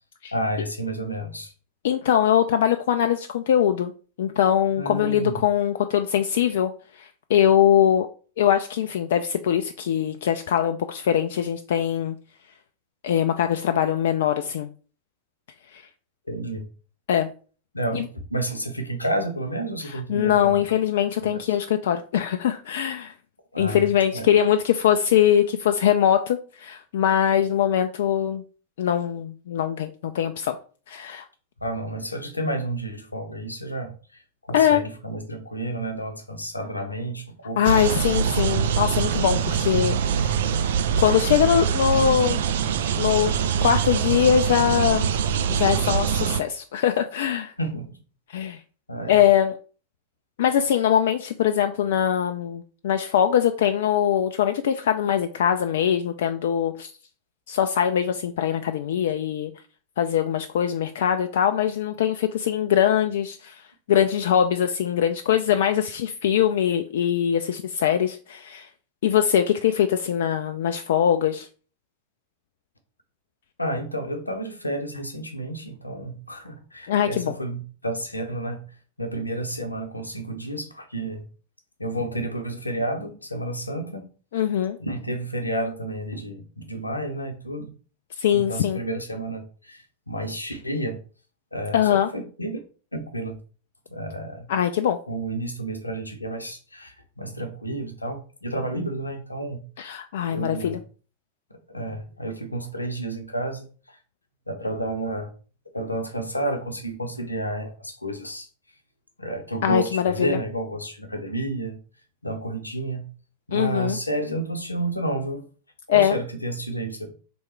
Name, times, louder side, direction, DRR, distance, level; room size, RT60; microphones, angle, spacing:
voice 1, 0.3-1.5 4.8-5.4 16.3-16.7 17.7-18.0 18.3-20.7 21.2-21.6 23.5-23.9 24.1-24.3 31.6-33.9 34.5-37.6 47.6-48.0 48.9-49.2 73.6-78.6 79.0-81.2 81.8-84.0 84.8-87.7 88.3-91.0 91.5-92.6 92.9-93.4 93.9-94.5 95.1-99.6 100.3-100.8 101.7-104.0 104.5-105.3 105.7-108.5 109.2-111.8 112.2-113.0 113.5-115.4 115.9-117.1, right 1 dB, 85° left, 0.8 m, -30 dB
voice 2, 1.8-3.9 4.2-6.7 7.0-8.1 8.4-12.1 13.0-14.7 15.7-15.8 17.1-17.3 17.9-18.1 19.9-23.1 23.6-28.4 28.8-30.5 30.9-31.2 34.5-34.8 37.6-40.0 40.2-40.4 41.0-42.4 43.0-43.3 43.6-45.1 45.5-47.5 48.3-48.6 49.1-49.5 50.4-56.9 57.5-59.5 60.0-63.6 63.9-68.7 69.0-71.5 76.9-77.3 84.3-84.8 88.2-88.8 91.7-92.1 94.5-95.0 99.8-100.8 109.6-110.4 113.5-114.0 115.9-116.1, left 9 dB, 60° left, 0.3 m, -22 dB
sound 1, 37.6-46.4, right 8 dB, 60° right, 0.3 m, -24 dB
3.5 x 3.1 x 4.4 m
figure-of-eight pair, 90°, 0 cm